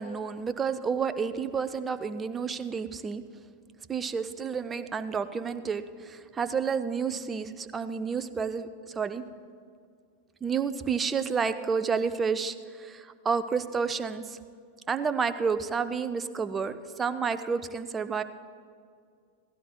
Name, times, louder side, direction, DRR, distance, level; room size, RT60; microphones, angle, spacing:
voice 1, 0.0-3.2 3.9-8.7 9.0-9.2 10.4-14.4 14.9-18.2, right 6 dB, 20° right, 11 dB, 0.6 m, -30 dB
16.5 x 16.5 x 2.2 m, 2.3 s
figure-of-eight pair, 90°, 0 cm